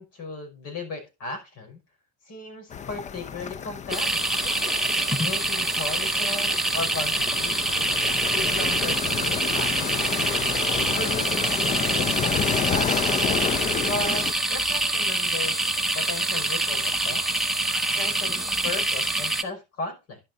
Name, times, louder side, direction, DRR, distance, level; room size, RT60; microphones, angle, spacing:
voice 1, 0.0-1.8 2.3-4.4 5.2-7.9 8.3-10.4 11.0-13.3 13.8-15.6 15.9-17.2 17.9-20.2, left 3 dB, 55° left, 3 dB, 5.7 m, -36 dB
sound 1, 2.7-14.3, left 7 dB, 25° left, 0.4 m, -30 dB
sound 2, 3.9-19.4, right 2 dB, ahead, 1.1 m, -25 dB
11.5 x 11.0 x 2.6 m, 0.26 s
cardioid pair, 140°, 29 cm